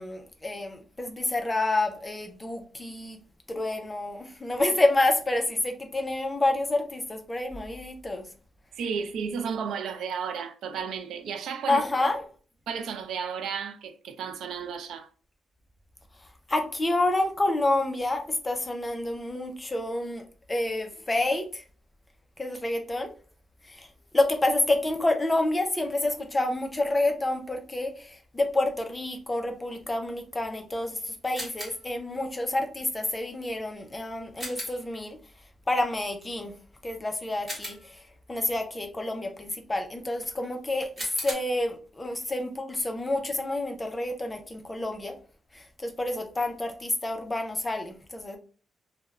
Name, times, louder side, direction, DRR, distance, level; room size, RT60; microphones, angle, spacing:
voice 1, 0.0-3.2 3.5-8.3 11.7-12.2 16.5-21.6 22.4-23.1 23.7-23.9 24.1-35.2 35.7-36.5 36.8-38.0 38.3-45.2 45.5-48.4, left 2 dB, 15° left, 0.4 m, -28 dB
voice 2, 8.8-11.8 12.7-15.1, right 6 dB, 75° right, 0.3 m, -33 dB
sound 1, 31.3-31.9 34.4-34.9 37.5-38.1 41.0-41.3, equal, 15° right, 1.0 m, -38 dB
2.3 x 2.0 x 3.1 m
wide cardioid pair, 170°, 0 cm